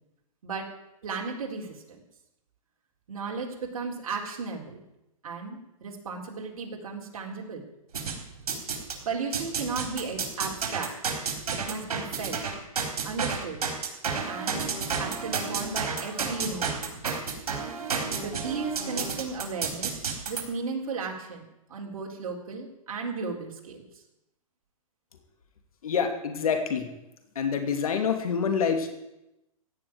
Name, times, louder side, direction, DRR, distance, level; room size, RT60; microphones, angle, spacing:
voice 1, 1.0-1.8 3.1-4.8 5.2-7.6 9.0-10.9 11.5-12.4 13.0-13.6 14.3-14.6 15.0-17.0 18.2-21.4 21.7-23.8, right 4 dB, 70° right, 0 dB, 3.9 m, -35 dB
sound 1, 7.9-9.0 9.3-20.4, right 5 dB, 85° right, 4.1 m, -31 dB
voice 2, 25.8-26.9 27.3-28.9, left 6 dB, 75° left, 5 dB, 2.7 m, -26 dB
16.0 x 6.3 x 9.7 m, 0.90 s
hypercardioid pair, 155°, 18 cm